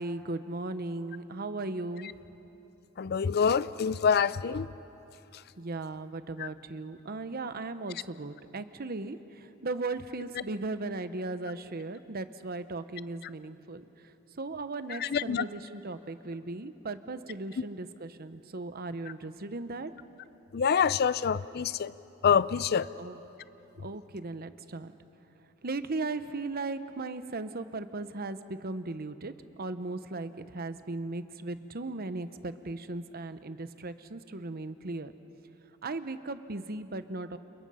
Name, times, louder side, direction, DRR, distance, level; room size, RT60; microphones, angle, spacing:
voice 1, 0.0-2.1 5.6-13.8 14.4-19.9 23.0-23.2 23.8-24.9 25.6-35.1 35.8-37.4, right 2 dB, 45° right, 11 dB, 0.9 m, -37 dB
voice 2, 3.0-4.7 6.4-6.5 15.0-15.4 20.5-21.9 22.2-22.9, left 7 dB, 50° left, 17 dB, 0.5 m, -26 dB
30.0 x 28.5 x 5.6 m, 3.0 s
head